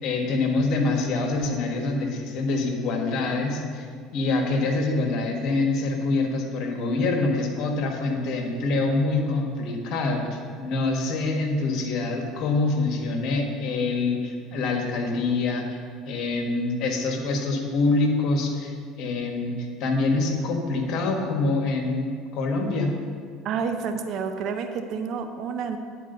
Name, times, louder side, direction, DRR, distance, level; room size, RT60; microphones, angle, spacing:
voice 1, 0.0-3.9 4.1-15.8 16.0-22.9, left 3 dB, 55° left, 2 dB, 1.5 m, -25 dB
voice 2, 23.4-25.8, right 6 dB, 55° right, 7 dB, 0.8 m, -29 dB
10.0 x 4.8 x 6.8 m, 2.1 s
hypercardioid pair, 70°, 0 cm